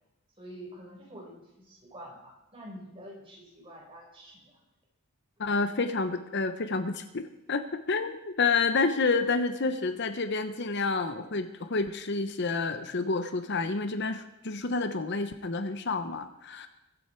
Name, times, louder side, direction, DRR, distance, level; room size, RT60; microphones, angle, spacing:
voice 1, 0.4-4.6, equal, 25° right, -2 dB, 4.8 m, -47 dB
voice 2, 5.4-16.7, left 4 dB, 55° left, 9 dB, 0.8 m, -29 dB
22.0 x 8.1 x 4.5 m, 0.93 s
head